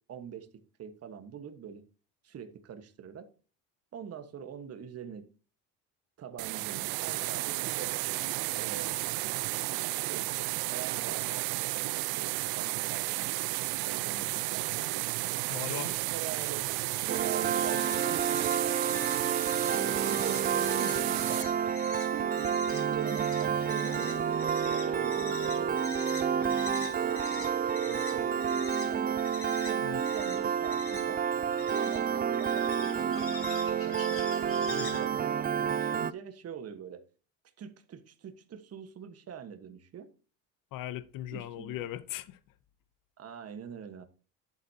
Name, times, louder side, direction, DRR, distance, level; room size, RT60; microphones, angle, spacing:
voice 1, 0.1-1.8 2.2-3.3 3.9-5.3 6.2-7.9 8.5-9.0 10.0-10.3 10.7-11.5 12.1-13.3 13.8-15.0 15.7-16.6 17.0-18.9 19.7-21.4 22.1-25.7 26.2-27.5 27.8-31.2 31.8-33.4 33.7-37.0 37.6-40.1 41.3-41.9 43.2-44.0, right 8 dB, 40° right, 1.4 m, -44 dB
sound 1, 6.4-21.4, right 19 dB, 75° right, 0.7 m, -33 dB
sound 2, 15.3-35.1, left 4 dB, 35° left, 4.3 m, -45 dB
voice 2, 15.5-16.0 29.8-30.0 34.7-35.0 40.7-42.4, left 13 dB, 60° left, 0.9 m, -39 dB
Piano, 17.1-36.1, right 8 dB, 25° right, 0.4 m, -30 dB
11.5 x 8.1 x 2.9 m
cardioid pair, 115°, 36 cm